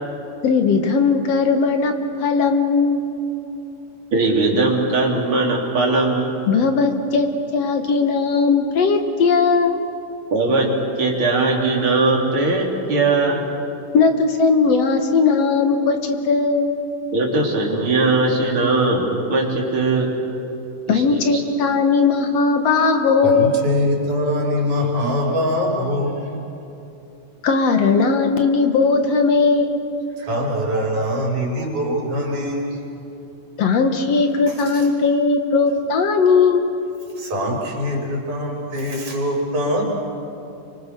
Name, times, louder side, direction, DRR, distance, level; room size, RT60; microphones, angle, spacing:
voice 1, 0.4-1.9 2.2-3.0 6.5-9.8 13.9-16.7 20.9-23.5 27.4-29.8 33.6-36.6, left 4 dB, 60° left, 6 dB, 2.4 m, -18 dB
voice 2, 4.1-6.4 10.3-10.7 11.0-13.4 17.1-20.1 20.9-21.4, right 3 dB, 45° right, 0 dB, 3.8 m, -19 dB
voice 3, 23.2-26.4 30.2-32.9 34.5-34.9 37.2-39.8, left 1 dB, 75° right, -1 dB, 6.0 m, -23 dB
28.5 x 25.0 x 6.8 m, 2.8 s
omnidirectional pair, 3.5 m